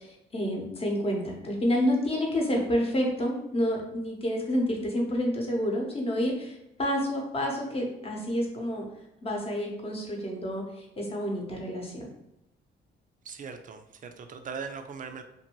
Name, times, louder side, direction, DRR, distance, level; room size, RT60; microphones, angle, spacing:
voice 1, 0.0-8.8 9.2-12.1, equal, 30° left, 0 dB, 0.8 m, -29 dB
voice 2, 13.3-15.2, right 5 dB, 40° right, 7 dB, 0.4 m, -39 dB
2.6 x 2.6 x 2.9 m, 0.88 s
cardioid pair, 90°, 20 cm